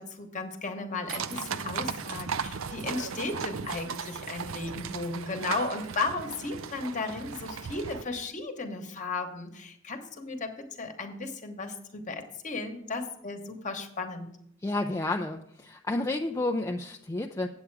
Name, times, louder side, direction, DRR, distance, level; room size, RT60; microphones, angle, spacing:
voice 1, 0.0-14.3, left 3 dB, 40° left, 5 dB, 1.1 m, -35 dB
sound 1, 1.1-8.0, right 6 dB, 90° right, 0.5 m, -36 dB
voice 2, 14.6-17.5, left 2 dB, 15° left, 3 dB, 0.4 m, -30 dB
8.5 x 8.0 x 4.7 m, 0.73 s
head